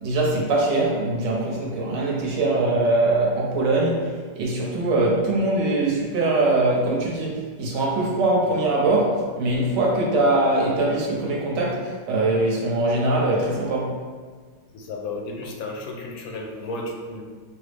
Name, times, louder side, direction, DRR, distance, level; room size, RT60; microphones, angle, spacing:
voice 1, 0.0-14.0, right 2 dB, 70° right, -3 dB, 1.4 m, -22 dB
voice 2, 14.7-17.2, left 2 dB, 90° left, 1 dB, 1.4 m, -33 dB
6.1 x 2.0 x 3.3 m, 1.5 s
omnidirectional pair, 2.0 m